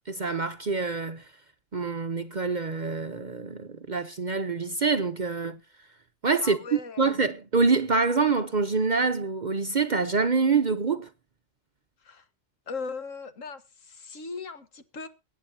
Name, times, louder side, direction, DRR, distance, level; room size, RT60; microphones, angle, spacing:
voice 1, 0.1-1.3 1.7-5.6 6.2-11.1, right 4 dB, 45° right, 0.7 m, -26 dB
voice 2, 6.4-7.2 12.0-12.3 12.7-15.1, left 4 dB, 70° left, 1.7 m, -38 dB
23.5 x 9.2 x 2.7 m
omnidirectional pair, 1.4 m